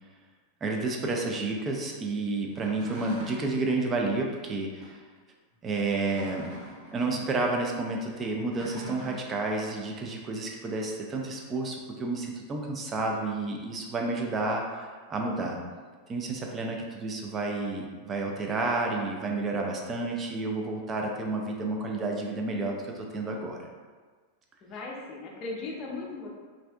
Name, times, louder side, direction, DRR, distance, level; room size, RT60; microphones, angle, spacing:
voice 1, 0.6-5.0 5.6-6.5 6.9-15.6 16.1-23.6, right 3 dB, 25° right, 1 dB, 0.4 m, -30 dB
sound 1, 2.5-3.6 4.8-5.0 5.8-7.4 8.4-9.4, left 1 dB, 40° right, 1.0 m, -42 dB
voice 2, 24.6-26.3, left 3 dB, 35° left, -2 dB, 0.5 m, -37 dB
3.2 x 2.6 x 2.2 m, 1.5 s
figure-of-eight pair, 90°, 0 cm